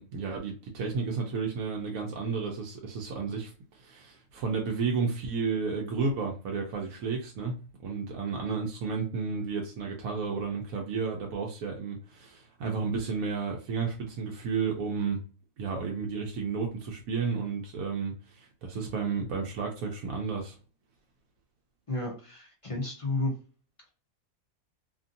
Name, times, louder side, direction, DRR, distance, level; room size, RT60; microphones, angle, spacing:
voice 1, 0.0-7.6 7.8-15.2 15.6-20.6, right 5 dB, 90° right, 1.1 m, -32 dB
voice 2, 21.9-23.3, left 2 dB, 40° left, 0.4 m, -32 dB
2.8 x 2.6 x 2.6 m
omnidirectional pair, 1.4 m